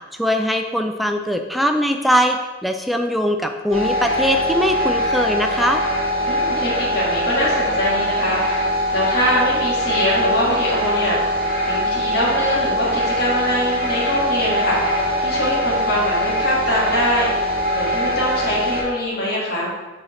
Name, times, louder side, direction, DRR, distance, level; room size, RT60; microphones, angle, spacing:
voice 1, 0.2-5.8, equal, ahead, 5 dB, 0.3 m, -21 dB
sound 1, 3.7-18.8, equal, 35° right, 1.9 m, -22 dB
voice 2, 6.3-19.7, equal, 55° left, -6 dB, 1.9 m, -23 dB
7.0 x 4.2 x 3.2 m, 1.2 s
head